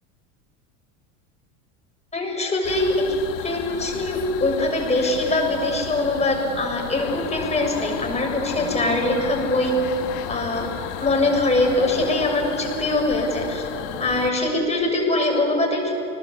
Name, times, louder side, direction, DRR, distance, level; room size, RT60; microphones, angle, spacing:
voice 1, 2.1-9.7 10.3-10.7 11.0-13.7 14.0-15.9, left 2 dB, 15° left, 1 dB, 6.9 m, -22 dB
sound 1, 2.6-14.3, left 10 dB, 75° left, 1.9 m, -34 dB
sound 2, 7.0-12.4, left 8 dB, 55° left, 2.5 m, -36 dB
30.0 x 19.5 x 8.6 m, 3.0 s
supercardioid pair, 120°, 39 cm